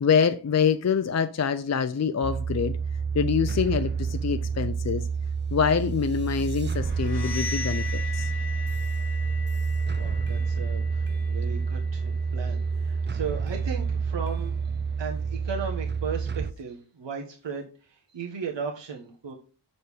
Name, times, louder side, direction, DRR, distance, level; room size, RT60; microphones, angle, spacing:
voice 1, 0.0-2.8 3.1-5.0 5.5-8.3, left 6 dB, 40° left, 10 dB, 0.5 m, -25 dB
sound 1, 2.2-16.5, right 5 dB, 25° right, 0.4 m, -28 dB
sound 2, 6.8-12.4, left 5 dB, 65° left, 1.1 m, -39 dB
voice 2, 10.0-14.6 15.0-19.3, right 6 dB, 80° right, 0 dB, 1.3 m, -36 dB
6.7 x 6.4 x 3.5 m, 0.34 s
wide cardioid pair, 85°, 43 cm